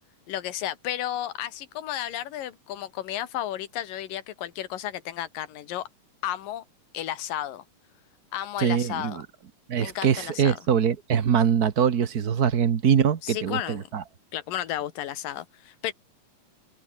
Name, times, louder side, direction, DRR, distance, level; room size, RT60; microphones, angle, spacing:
voice 1, 0.3-5.9 6.2-6.6 6.9-7.6 8.3-9.2 9.8-10.6 13.2-13.9 14.3-15.9, left 12 dB, 90° left, 3.2 m, -33 dB
voice 2, 8.6-9.2 9.7-14.0, right 8 dB, 70° right, 0.8 m, -23 dB
omnidirectional pair, 3.8 m